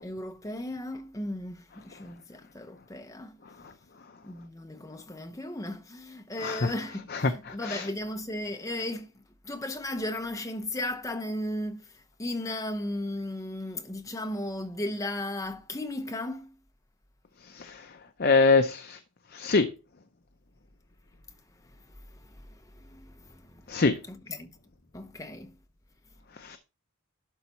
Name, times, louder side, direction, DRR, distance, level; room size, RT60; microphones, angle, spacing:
voice 1, 0.0-3.4 4.2-9.1 9.4-11.9 12.2-16.5 22.8-23.6 24.1-24.6 24.9-25.6, left 1 dB, 15° left, 0.8 m, -35 dB
voice 2, 6.4-6.7 7.1-7.9 17.5-17.9 18.2-19.0 19.3-19.7 23.7-24.0 26.4-26.6, left 4 dB, 45° left, 0.6 m, -25 dB
11.5 x 4.0 x 4.3 m
head